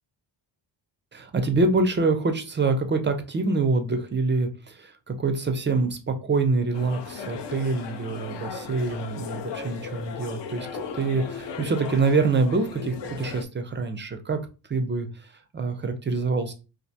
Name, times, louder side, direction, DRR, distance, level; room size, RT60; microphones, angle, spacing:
voice 1, 1.1-10.7 10.9-14.4 14.7-16.5, right 3 dB, 25° right, 7 dB, 0.3 m, -25 dB
sound 1, 6.7-13.4, left 6 dB, 60° left, 0.5 m, -37 dB
2.4 x 2.1 x 2.7 m, 0.32 s
cardioid pair, 80°, 48 cm